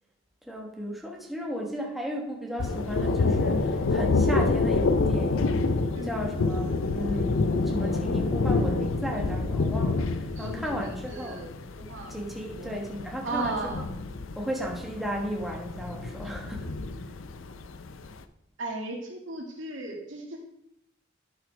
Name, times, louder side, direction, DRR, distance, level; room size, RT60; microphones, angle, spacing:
voice 1, 0.5-5.6 6.0-11.4 12.0-13.7 14.4-16.8, equal, ahead, -1 dB, 1.3 m, -35 dB
Thunder, 2.6-18.1, left 3 dB, 85° left, 0.6 m, -28 dB
voice 2, 10.4-11.5 11.8-12.1 12.6-12.7 13.2-13.8 18.6-20.4, right 2 dB, 70° right, 0 dB, 2.0 m, -35 dB
11.0 x 4.9 x 4.9 m, 0.77 s
head